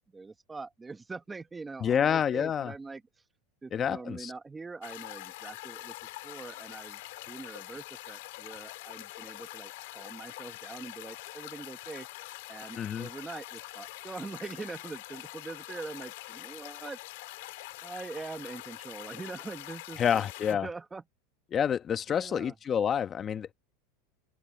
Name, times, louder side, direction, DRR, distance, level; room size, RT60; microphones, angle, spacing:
voice 1, 0.0-3.2 3.6-5.9 6.2-7.0 7.3-12.1 12.5-17.0 17.8-20.3 20.6-21.0 22.1-22.5, right 3 dB, 10° right, 1.0 m, -43 dB
voice 2, 1.8-2.7 3.7-4.3 12.8-13.1 20.0-20.7 21.5-23.5, left 8 dB, 25° left, 1.0 m, -28 dB
sound 1, 4.8-20.5, left 20 dB, 70° left, 2.5 m, -44 dB
open air
supercardioid pair, 150°, 0 cm